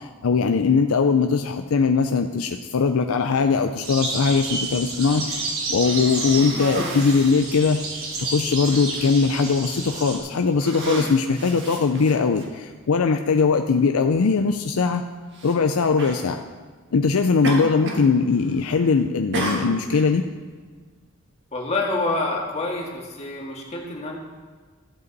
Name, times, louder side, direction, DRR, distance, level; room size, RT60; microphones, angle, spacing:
voice 1, 0.0-7.8 8.2-15.0 15.4-16.4 16.9-20.2, left 5 dB, 90° left, 6 dB, 0.5 m, -21 dB
morning birds, 3.8-10.2, right 3 dB, 80° right, 3.0 m, -30 dB
Cough, 5.8-7.4 8.2-8.3 8.6-9.1 9.9-10.1 10.5-12.5 13.4-13.5 15.3-15.6 16.0-16.2 17.4-18.1 18.4-18.8 19.3-20.1, right 1 dB, 55° right, 1.6 m, -31 dB
voice 2, 21.5-24.2, left 2 dB, 30° left, -1 dB, 1.9 m, -27 dB
15.0 x 8.0 x 4.1 m, 1.5 s
head